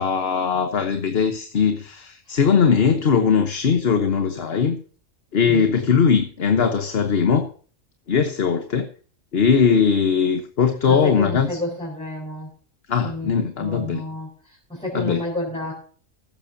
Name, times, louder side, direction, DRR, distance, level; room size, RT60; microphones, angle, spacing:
voice 1, 0.0-4.8 5.3-7.5 8.1-8.9 9.3-11.6 12.9-14.0 14.9-15.2, left 6 dB, 50° left, 7 dB, 1.3 m, -20 dB
voice 2, 10.9-12.5 13.0-13.3 13.6-14.3 14.7-15.7, left 1 dB, 5° left, -5 dB, 4.8 m, -29 dB
15.5 x 12.5 x 2.8 m, 0.43 s
omnidirectional pair, 1.3 m